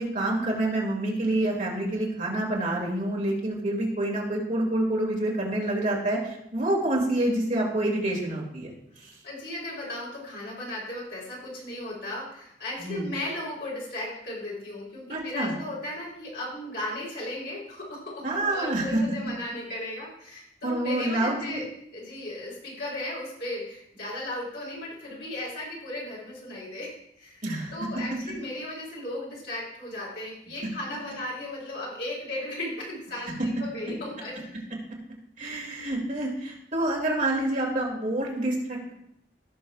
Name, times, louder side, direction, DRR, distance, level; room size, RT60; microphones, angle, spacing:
voice 1, 0.0-8.7 9.0-9.1 12.8-13.0 15.1-15.5 18.2-19.0 20.6-21.4 27.4-27.7 35.4-38.9, right 1 dB, 45° right, -2 dB, 2.2 m, -27 dB
voice 2, 9.2-21.7 21.9-27.4 27.7-34.4, left 1 dB, 70° left, -4 dB, 3.4 m, -36 dB
16.5 x 6.3 x 2.3 m, 0.75 s
head